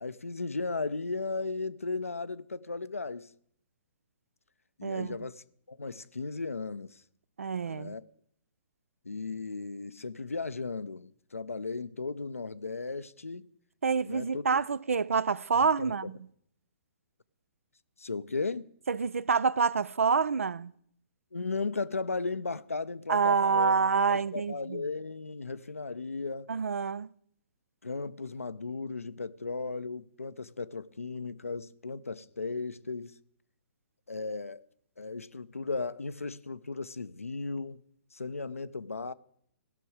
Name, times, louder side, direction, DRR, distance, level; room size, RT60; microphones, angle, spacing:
voice 1, 0.0-3.3 4.8-7.0 7.7-8.0 9.0-13.5 14.0-14.5 15.5-16.1 18.0-18.7 21.3-23.7 24.1-26.5 27.8-33.2 34.1-34.6 35.0-37.8 38.1-39.1, left 3 dB, 90° left, 0.5 m, -36 dB
voice 2, 4.8-5.2 7.4-8.0 13.8-16.1 18.9-20.7 23.1-24.8 26.5-27.1, right 5 dB, 80° right, 0.4 m, -27 dB
18.0 x 6.2 x 4.8 m
figure-of-eight pair, 125°, 7 cm